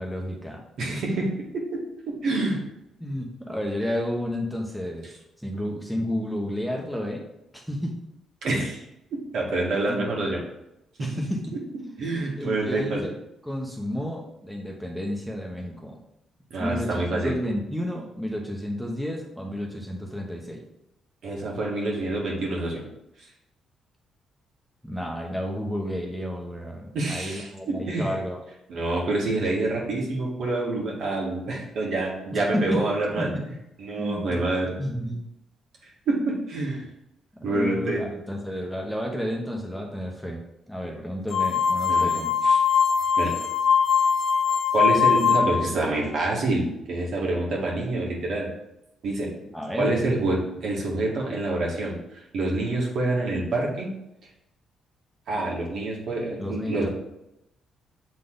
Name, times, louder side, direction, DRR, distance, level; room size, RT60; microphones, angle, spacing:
voice 1, 0.0-0.6 3.0-5.1 5.4-7.2 7.5-8.0 9.9-10.0 11.0-11.6 12.4-16.0 16.6-20.6 24.8-28.4 32.3-32.9 33.2-33.5 34.0-34.4 34.8-35.3 37.3-42.3 49.5-50.0 56.4-56.9, equal, ahead, 0 dB, 1.1 m, -31 dB
voice 2, 0.8-2.6 8.4-8.8 9.1-10.4 11.0-11.2 12.0-13.0 16.5-17.3 21.2-22.8 26.9-28.1 28.7-33.3 33.8-34.8 36.1-36.8 37.4-38.0 41.9-42.6 43.2-43.3 44.7-48.5 49.0-49.3 49.8-53.9 55.3-56.9, right 2 dB, 65° right, -2 dB, 1.9 m, -27 dB
sound 1, 41.3-45.7, left 6 dB, 65° left, 1.5 m, -21 dB
6.6 x 3.8 x 3.9 m, 0.86 s
cardioid pair, 90°, 0 cm